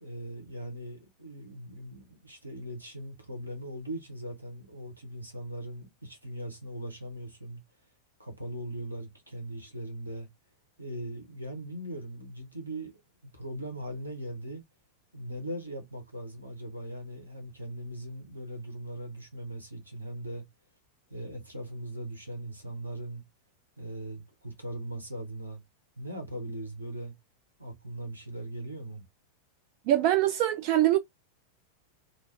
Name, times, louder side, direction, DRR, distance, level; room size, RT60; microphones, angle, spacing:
voice 1, 0.0-7.6 8.2-10.3 10.8-12.9 13.3-14.6 15.1-20.5 21.1-23.2 23.8-25.6 26.0-27.1 27.6-29.0, right 1 dB, 85° right, 1.1 m, -39 dB
voice 2, 29.9-31.0, right 13 dB, 45° right, 0.3 m, -23 dB
2.8 x 2.5 x 3.2 m
figure-of-eight pair, 90°, 0 cm